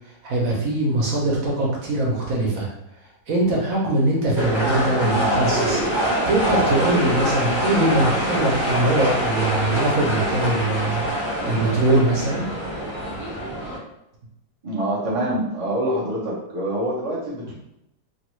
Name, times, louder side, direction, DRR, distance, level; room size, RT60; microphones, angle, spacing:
voice 1, 0.2-2.7 3.3-5.8 6.2-11.0 11.4-12.5, right 2 dB, 60° right, -3 dB, 1.1 m, -22 dB
sound 1, 4.4-13.8, equal, 20° right, 1.2 m, -24 dB
voice 2, 14.6-17.5, right 1 dB, 40° right, -5 dB, 0.5 m, -25 dB
3.0 x 2.4 x 3.0 m, 0.82 s
omnidirectional pair, 1.8 m